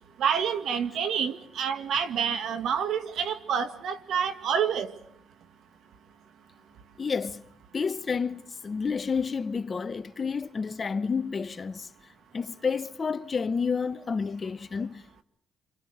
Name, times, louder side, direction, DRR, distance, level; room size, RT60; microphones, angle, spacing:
voice 1, 0.2-4.9, right 7 dB, 70° right, 2.0 m, -28 dB
voice 2, 7.0-7.4 7.7-11.9 12.3-15.2, left 5 dB, 35° left, 0.9 m, -30 dB
28.0 x 28.0 x 4.9 m
cardioid pair, 90°, 0 cm